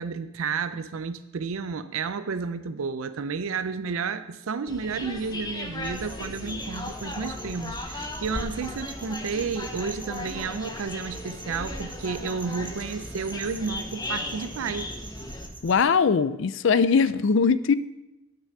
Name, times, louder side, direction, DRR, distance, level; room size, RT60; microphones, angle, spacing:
voice 1, 0.0-14.9, right 5 dB, 75° right, 11 dB, 0.5 m, -31 dB
sound 1, 4.7-15.5, left 2 dB, 20° left, 0.9 m, -37 dB
sound 2, 5.8-15.8, right 1 dB, 10° right, 0.7 m, -43 dB
voice 2, 15.6-17.8, left 5 dB, 60° left, 15 dB, 0.4 m, -21 dB
9.0 x 6.6 x 6.0 m, 0.96 s
head